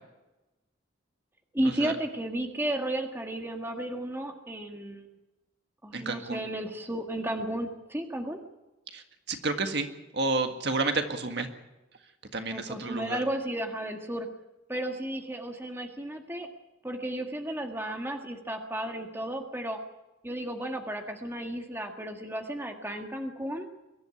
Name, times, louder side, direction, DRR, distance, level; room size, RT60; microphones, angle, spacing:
voice 1, 1.5-5.1 5.8-8.4 12.5-14.3 14.7-16.5 16.8-19.8 20.2-23.7, right 1 dB, 10° right, 3 dB, 1.7 m, -33 dB
voice 2, 5.9-6.4 8.9-9.0 9.3-9.9 10.1-11.5 12.3-13.2, right 3 dB, 55° right, 6 dB, 1.8 m, -30 dB
23.0 x 12.0 x 9.8 m, 1.0 s
head